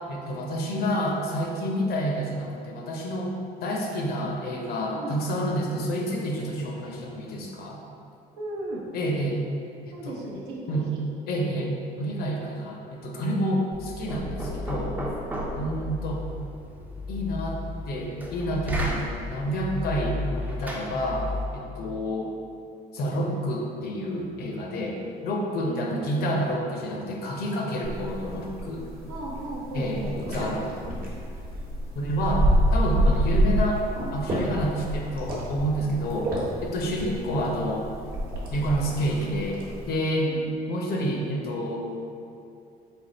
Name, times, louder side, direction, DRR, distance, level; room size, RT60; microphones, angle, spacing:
voice 1, 0.0-3.3 3.6-7.8 8.9-9.4 10.0-10.2 10.7-10.9 11.3-15.0 15.5-16.2 17.1-17.6 17.9-21.3 21.5-22.4 22.9-28.9 29.7-30.0 30.3-31.0 32.0-33.9 34.1-36.4 36.6-37.8 38.5-40.3 40.7-41.9, equal, 65° left, 0 dB, 0.6 m, -29 dB
voice 2, 8.4-8.8 9.9-11.0 15.5-15.8 25.6-26.4 29.1-30.1 40.2-40.5, right 2 dB, 85° right, -3 dB, 0.7 m, -37 dB
Knock, 13.7-21.6, left 1 dB, 10° right, 0.4 m, -33 dB
sound 1, 27.8-40.0, equal, 55° right, 0.9 m, -28 dB
3.4 x 2.3 x 3.9 m, 2.5 s
cardioid pair, 110°, 17 cm